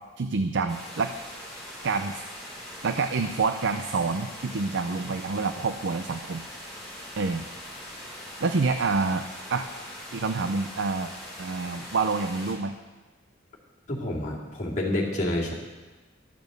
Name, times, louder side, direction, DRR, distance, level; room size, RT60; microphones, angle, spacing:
voice 1, 0.2-1.1 1.8-2.2 2.8-6.4 7.2-7.5 8.4-9.2 9.5-9.7 10.1-11.1 11.4-12.7, right 4 dB, 65° right, 8 dB, 0.5 m, -27 dB
sound 1, 0.7-12.5, left 1 dB, ahead, 4.5 m, -42 dB
voice 2, 13.9-15.5, left 1 dB, 40° left, -4 dB, 2.5 m, -28 dB
12.5 x 7.1 x 6.6 m, 1.3 s
head